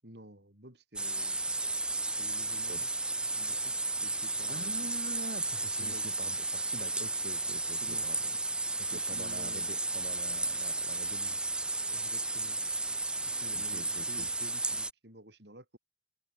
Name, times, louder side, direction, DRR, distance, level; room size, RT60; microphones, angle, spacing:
voice 1, 0.0-1.5 2.2-2.9 3.3-4.9 5.8-6.1 7.7-8.1 8.9-9.7 11.9-12.6 13.3-15.8, right 1 dB, 75° right, 7.6 m, -51 dB
sound 1, 1.0-14.9, right 2 dB, 5° right, 0.5 m, -33 dB
voice 2, 4.5-8.3 8.8-11.4 13.5-14.3, right 2 dB, 55° right, 1.0 m, -46 dB
head